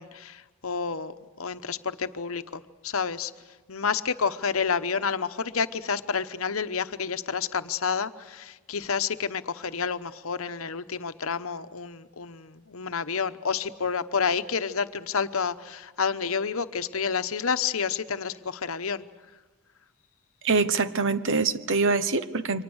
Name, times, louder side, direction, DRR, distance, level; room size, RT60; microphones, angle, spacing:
voice 1, 0.0-3.3 3.7-19.0, left 6 dB, 70° left, 10 dB, 1.0 m, -29 dB
voice 2, 20.4-22.6, right 4 dB, 60° right, 13 dB, 1.1 m, -24 dB
29.0 x 24.5 x 6.4 m, 1.2 s
head